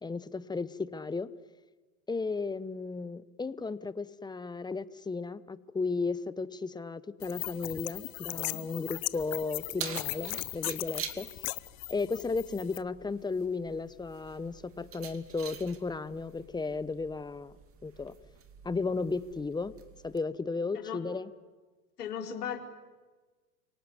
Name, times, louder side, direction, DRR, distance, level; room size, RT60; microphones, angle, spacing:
voice 1, 0.0-1.3 2.1-11.3 11.9-17.5 17.8-18.1 18.6-19.7 20.0-21.3, left 4 dB, 10° left, 15 dB, 0.8 m, -34 dB
sound 1, 7.2-12.8, left 25 dB, 45° left, 0.8 m, -38 dB
Keys jangling, 9.1-20.2, right 7 dB, 30° right, 2.5 m, -47 dB
voice 2, 22.0-22.6, left 8 dB, 85° left, 3 dB, 4.2 m, -36 dB
29.0 x 18.5 x 9.8 m, 1.3 s
hypercardioid pair, 110°, 45 cm